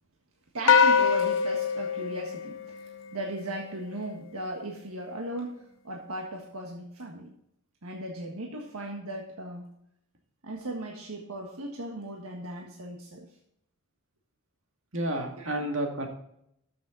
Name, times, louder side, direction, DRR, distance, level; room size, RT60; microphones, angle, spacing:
voice 1, 0.5-5.5 5.8-7.3 7.8-9.7 10.4-13.3 15.4-15.6, right 1 dB, 80° right, 0 dB, 1.6 m, -37 dB
sound 1, 0.7-3.2, left 6 dB, 60° left, 0.8 m, -24 dB
voice 2, 14.9-16.1, right 1 dB, 60° right, 2 dB, 2.2 m, -30 dB
13.0 x 6.9 x 3.9 m, 0.74 s
head